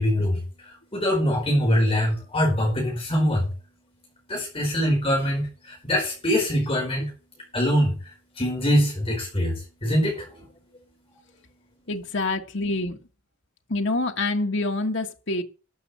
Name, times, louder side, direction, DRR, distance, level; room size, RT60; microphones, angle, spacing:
voice 1, 0.0-3.5 4.3-7.1 7.5-10.4, equal, 30° left, 4.7 m, -24 dB
voice 2, 11.9-13.0 13.7-15.4, left 2 dB, 60° left, 1.5 m, -26 dB
13.0 x 6.7 x 8.0 m
head